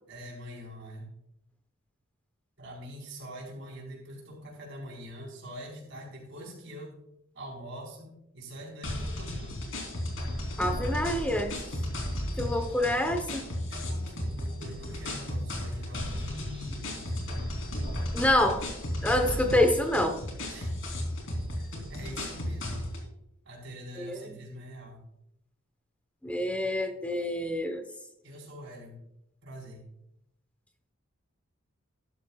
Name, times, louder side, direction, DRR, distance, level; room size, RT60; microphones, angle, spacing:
voice 1, 0.1-1.1 2.6-6.9 7.3-8.1 8.3-9.6 13.7-17.5 20.5-20.8 21.6-22.9 23.4-25.0 28.2-29.0 29.4-29.9, equal, 60° right, -1 dB, 4.5 m, -44 dB
sound 1, 8.8-23.1, left 1 dB, 70° left, 3.3 m, -34 dB
voice 2, 10.6-11.5 12.4-13.5 18.1-18.6 19.0-20.2 24.0-24.4 26.2-27.8, left 1 dB, 5° left, 6 dB, 0.9 m, -27 dB
13.5 x 12.0 x 2.4 m, 0.82 s
head